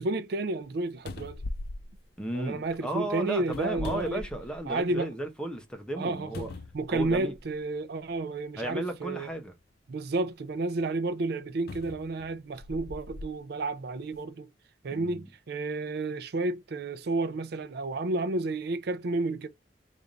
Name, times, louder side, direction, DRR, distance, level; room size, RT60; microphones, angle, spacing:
voice 1, 0.0-1.4 2.3-4.2 4.7-5.1 6.0-9.3 9.9-14.5 14.8-19.5, right 2 dB, 60° right, 0.5 m, -31 dB
sound 1, 0.7-0.8 1.1-2.8 3.4-4.9 5.3-5.4 6.3-7.5 8.4-8.5 11.7-13.3 14.0-14.2, left 2 dB, 60° left, 0.5 m, -40 dB
voice 2, 2.2-6.5 6.9-7.3 8.6-9.5 14.9-15.2, right 1 dB, 5° left, 0.7 m, -34 dB
3.4 x 2.5 x 3.8 m
head